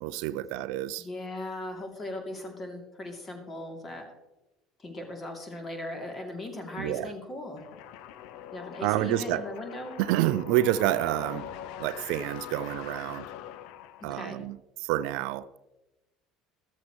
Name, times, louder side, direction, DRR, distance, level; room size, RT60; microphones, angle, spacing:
voice 1, 0.0-1.1 6.8-7.1 8.8-9.4 10.0-11.5 11.8-13.3 14.0-15.5, right 14 dB, 60° right, 0.4 m, -28 dB
voice 2, 1.0-4.1 4.8-7.6 8.5-9.9 14.0-14.4, left 1 dB, 25° left, 2.8 m, -38 dB
sound 1, 7.6-14.3, left 10 dB, 60° left, 0.6 m, -43 dB
14.0 x 13.0 x 3.1 m
figure-of-eight pair, 65°, 0 cm